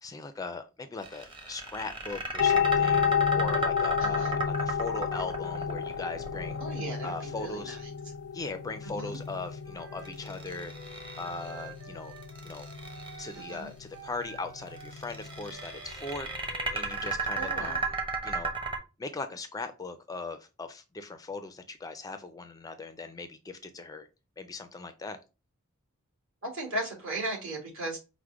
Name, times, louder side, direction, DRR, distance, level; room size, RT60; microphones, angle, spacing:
voice 1, 0.0-6.6 7.0-7.8 8.3-10.7 11.2-12.1 12.4-12.7 13.2-17.9 18.2-18.5 19.0-24.1 24.4-25.2, left 3 dB, 15° left, 0.4 m, -39 dB
sound 1, 1.0-7.2 10.0-11.6 12.2-13.5 14.8-18.8, right 3 dB, 25° right, 0.8 m, -35 dB
sound 2, 2.4-17.1, left 7 dB, 85° left, 0.4 m, -32 dB
voice 2, 4.0-4.3 6.6-7.9 8.8-9.2 13.3-13.7 17.3-17.8 26.4-28.0, right 2 dB, 65° right, 2.0 m, -37 dB
Wind instrument woodwind instrument, 9.6-13.7 13.9-18.1, right 4 dB, 45° right, 1.8 m, -50 dB
4.8 x 2.1 x 4.5 m
head